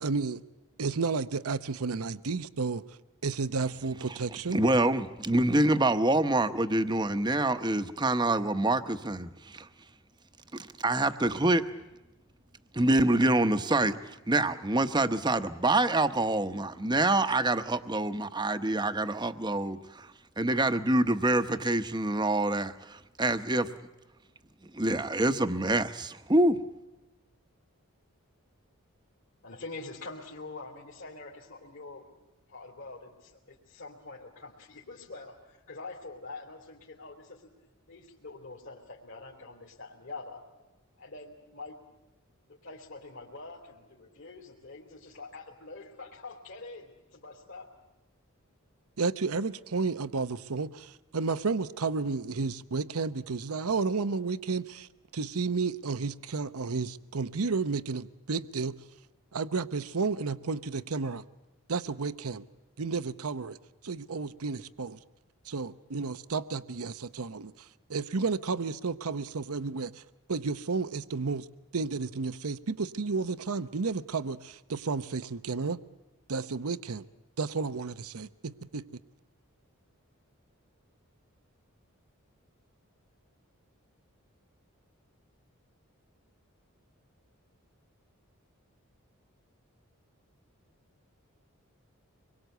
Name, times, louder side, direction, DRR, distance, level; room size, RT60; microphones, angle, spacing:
voice 1, 0.0-0.4 0.8-3.0 3.2-4.6 49.0-58.8 59.3-61.2 61.7-62.4 62.8-63.6 63.8-65.0 65.4-70.0 70.3-71.5 71.7-75.8 76.3-77.0 77.4-78.8, right 4 dB, 80° right, 13 dB, 0.8 m, -32 dB
voice 2, 4.5-9.7 10.5-11.6 12.7-14.0 14.3-20.1 20.4-23.7 24.7-26.6, right 2 dB, 20° right, 10 dB, 0.9 m, -26 dB
voice 3, 29.4-32.0 32.5-37.5 37.9-40.4 41.0-41.8 42.5-47.7, left 3 dB, 55° left, -1 dB, 3.2 m, -45 dB
25.5 x 22.5 x 8.1 m, 1.0 s
head